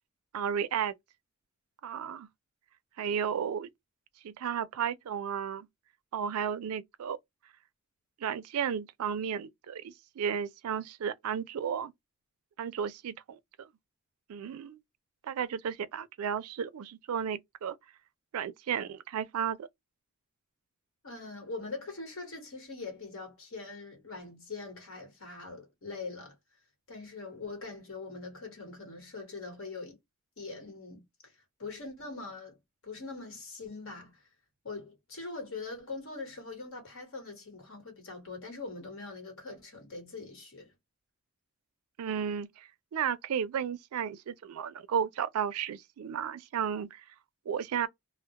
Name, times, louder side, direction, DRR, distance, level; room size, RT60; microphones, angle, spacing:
voice 1, 0.3-0.9 1.8-2.3 3.0-3.7 4.2-5.7 6.1-7.2 8.2-11.9 12.6-13.7 14.3-14.8 15.2-17.8 18.3-19.7 42.0-47.0 47.5-47.9, right 8 dB, 85° right, 0.4 m, -33 dB
voice 2, 21.0-26.3 26.9-30.0 30.4-31.3 31.6-32.6 32.8-34.2 34.6-40.7, left 3 dB, 65° left, 1.2 m, -42 dB
2.2 x 2.0 x 2.7 m
head